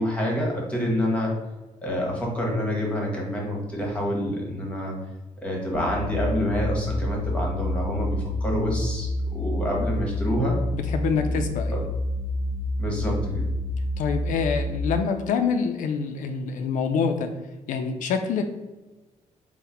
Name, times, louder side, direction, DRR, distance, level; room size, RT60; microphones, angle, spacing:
voice 1, 0.0-1.3 1.8-5.0 5.4-10.6 11.2-11.4 11.7-11.8 12.8-13.5, left 1 dB, 10° left, -2 dB, 1.0 m, -27 dB
sound 1, 5.7-14.8, left 1 dB, 25° right, 0.8 m, -28 dB
voice 2, 10.7-11.8 14.0-17.3 17.7-18.4, left 5 dB, 85° left, 6 dB, 0.4 m, -26 dB
3.8 x 2.1 x 4.2 m, 1.1 s
cardioid pair, 150°, 13 cm